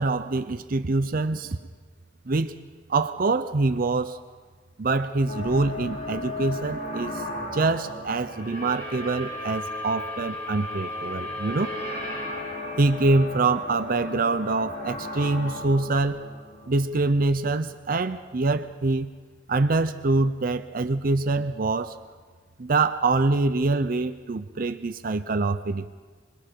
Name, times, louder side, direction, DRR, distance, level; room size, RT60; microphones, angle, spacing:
voice 1, 0.0-1.6 2.3-2.5 2.9-4.2 4.8-7.2 7.5-11.7 12.8-16.2 16.7-19.1 19.5-22.0 22.6-25.9, right 3 dB, 45° right, 10 dB, 0.6 m, -25 dB
sound 1, 5.2-17.4, left 1 dB, 45° left, 6.6 m, -35 dB
26.0 x 22.0 x 4.6 m, 1.4 s
head